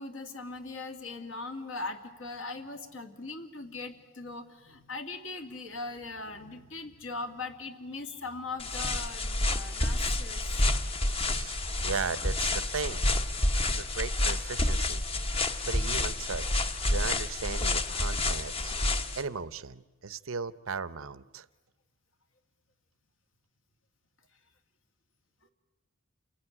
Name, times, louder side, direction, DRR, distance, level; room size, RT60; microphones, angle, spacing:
voice 1, 0.0-10.4, left 3 dB, 65° left, 6 dB, 2.3 m, -40 dB
sound 1, 8.6-19.2, left 2 dB, 25° left, 1.1 m, -29 dB
voice 2, 11.0-13.0 13.7-18.7 19.2-21.5, right 5 dB, 70° right, 17 dB, 0.8 m, -37 dB
28.5 x 18.0 x 9.9 m, 1.2 s
head